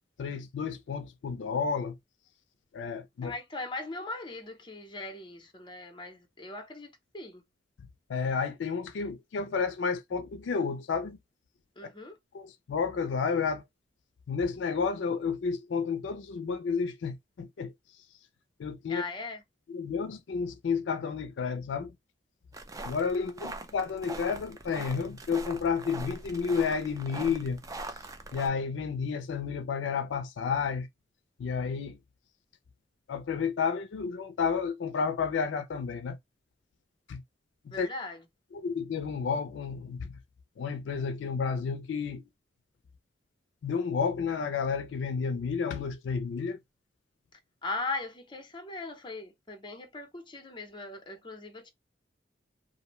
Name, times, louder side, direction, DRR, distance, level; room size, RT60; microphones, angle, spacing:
voice 1, 0.2-2.0 2.7-3.3 8.1-11.2 11.8-11.9 12.3-13.6 14.3-17.7 18.6-19.0 19.7-21.9 22.9-27.6 28.3-30.9 31.4-32.0 33.1-36.2 37.1-37.2 37.6-37.9 38.5-40.2 40.6-42.3 43.6-46.6, left 5 dB, 80° left, 0.4 m, -31 dB
voice 2, 3.2-7.4 11.8-12.2 18.9-19.4 23.2-23.3 37.7-38.2 47.6-51.7, left 2 dB, 25° left, 0.6 m, -39 dB
sound 1, 22.5-28.5, right 2 dB, 20° right, 0.4 m, -42 dB
2.5 x 2.1 x 2.9 m
head